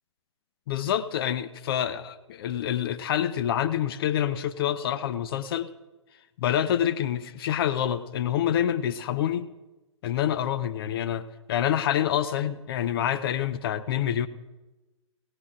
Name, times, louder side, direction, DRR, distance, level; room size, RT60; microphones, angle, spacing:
voice 1, 0.7-5.7 6.4-9.5 10.0-14.3, left 10 dB, 50° left, 12 dB, 0.7 m, -27 dB
21.0 x 17.5 x 2.5 m, 1.1 s
figure-of-eight pair, 125°, 16 cm